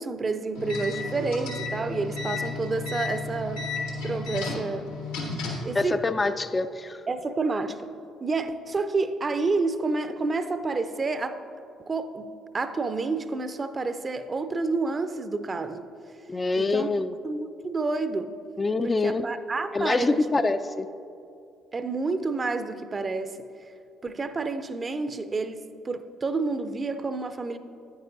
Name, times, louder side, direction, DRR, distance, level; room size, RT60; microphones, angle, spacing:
voice 1, 0.0-3.7 4.0-4.9 5.6-6.0 7.1-7.9 8.2-11.4 11.9-12.3 12.5-15.8 16.5-16.9 17.2-18.3 18.8-20.2 21.7-23.4 24.0-27.6, right 3 dB, 35° right, 11 dB, 0.5 m, -29 dB
sound 1, 0.5-5.7, left 3 dB, 80° left, 1.3 m, -33 dB
voice 2, 5.7-7.0 16.3-17.1 18.6-19.3 19.7-20.9, left 3 dB, 25° left, 10 dB, 0.3 m, -25 dB
9.5 x 9.1 x 2.5 m, 2.5 s
figure-of-eight pair, 45°, 0 cm